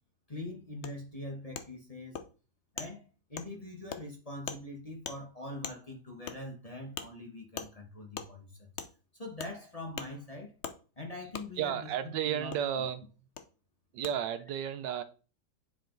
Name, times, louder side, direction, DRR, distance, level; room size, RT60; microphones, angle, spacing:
voice 1, 0.3-2.2 2.7-8.7 9.1-10.5 11.0-11.9 12.2-12.8, left 1 dB, 25° left, 1.2 m, -43 dB
Wood, 0.8-0.9 1.5-1.7 2.1-2.3 2.8-2.9 3.4-3.5 3.9-4.0 4.5-4.6 5.0-5.2 5.6-5.8 6.3-6.4 7.0-7.1 7.6-7.7 8.1-8.3 8.8-8.9 9.4-9.5 10.0-10.1 10.6-10.8 11.3-11.5 12.5-12.6 13.4-13.5 14.0-14.1, left 7 dB, 60° left, 0.7 m, -39 dB
voice 2, 11.6-13.0 13.9-15.0, right 9 dB, 80° right, 1.3 m, -33 dB
8.8 x 5.0 x 3.9 m
omnidirectional pair, 1.9 m